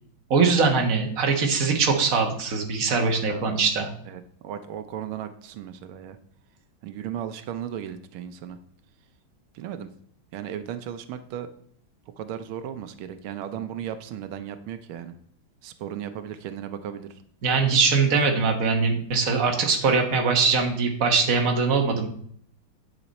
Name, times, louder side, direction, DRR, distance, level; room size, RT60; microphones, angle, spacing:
voice 1, 0.3-3.9 17.4-22.1, right 4 dB, 45° right, 2 dB, 1.6 m, -22 dB
voice 2, 3.3-3.7 4.1-6.2 6.8-8.6 9.5-9.9 10.3-11.5 12.2-15.1 15.6-17.1, right 9 dB, 90° right, 10 dB, 1.5 m, -36 dB
10.0 x 6.8 x 4.2 m, 0.63 s
omnidirectional pair, 2.2 m